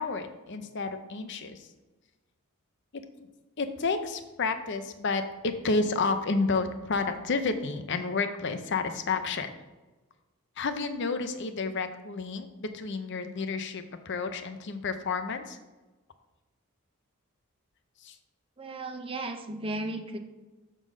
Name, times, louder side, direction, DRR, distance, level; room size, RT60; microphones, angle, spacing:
voice 1, 0.0-1.7 2.9-3.0 3.6-9.5 10.6-15.6 18.0-18.2, left 4 dB, 55° left, 8 dB, 0.6 m, -30 dB
voice 2, 18.6-20.2, right 2 dB, 25° right, 4 dB, 0.6 m, -35 dB
6.6 x 3.8 x 6.3 m, 1.2 s
head